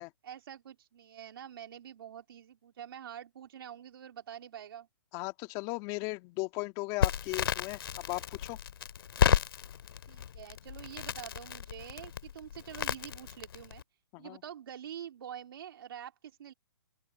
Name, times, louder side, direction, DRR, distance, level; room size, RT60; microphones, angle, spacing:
voice 1, 0.2-4.9 10.1-13.8 14.2-16.5, right 9 dB, 65° right, 2.5 m, -46 dB
voice 2, 5.1-7.8 8.1-8.6 14.1-14.4, left 23 dB, 30° left, 2.2 m, -37 dB
Crackle, 7.0-13.8, left 9 dB, 65° left, 2.1 m, -32 dB
open air
hypercardioid pair, 150°, 13 cm